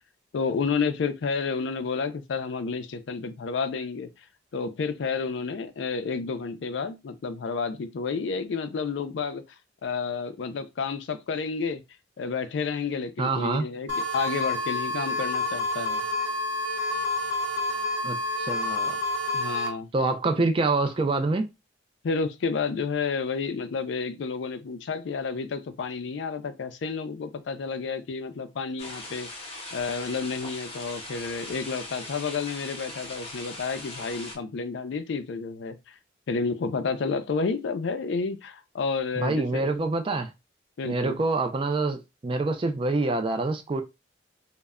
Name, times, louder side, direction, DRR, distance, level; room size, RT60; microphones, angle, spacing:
voice 1, 0.3-4.3 4.5-9.4 9.8-11.8 12.2-16.0 19.3-19.9 22.0-36.0 36.3-39.7 40.8-41.2, left 5 dB, 70° left, 0.4 m, -30 dB
voice 2, 13.2-13.7 18.0-19.0 19.9-21.5 39.2-40.3 40.8-43.8, right 3 dB, 30° right, 0.3 m, -26 dB
sound 1, 13.9-19.7, left 2 dB, 85° right, 0.8 m, -28 dB
sound 2, 28.8-34.4, left 2 dB, 30° left, 0.6 m, -40 dB
2.1 x 2.1 x 3.5 m
head